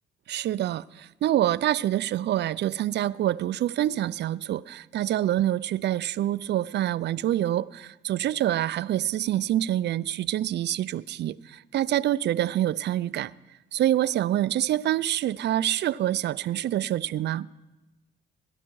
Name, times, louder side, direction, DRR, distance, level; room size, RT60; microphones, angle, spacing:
voice 1, 0.3-13.3 13.7-17.5, right 12 dB, 60° right, 0.4 m, -26 dB
18.5 x 11.0 x 4.7 m
cardioid pair, 90°, 20 cm